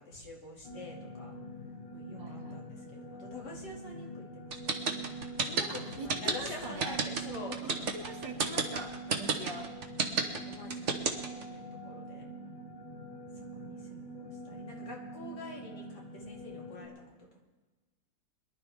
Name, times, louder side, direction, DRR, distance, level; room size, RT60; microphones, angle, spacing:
voice 1, 0.0-1.3 1.9-4.9 5.4-7.7 10.1-12.2 13.4-16.9, left 2 dB, 65° left, -2 dB, 3.0 m, -47 dB
sound 1, 0.6-16.9, right 2 dB, 30° left, 1.3 m, -44 dB
voice 2, 2.2-2.6 5.8-7.0 7.9-9.7, right 1 dB, 80° right, 0 dB, 2.7 m, -43 dB
sound 2, 4.5-11.4, right 5 dB, 45° right, 1.4 m, -30 dB
22.5 x 11.5 x 3.5 m, 1.3 s
omnidirectional pair, 2.0 m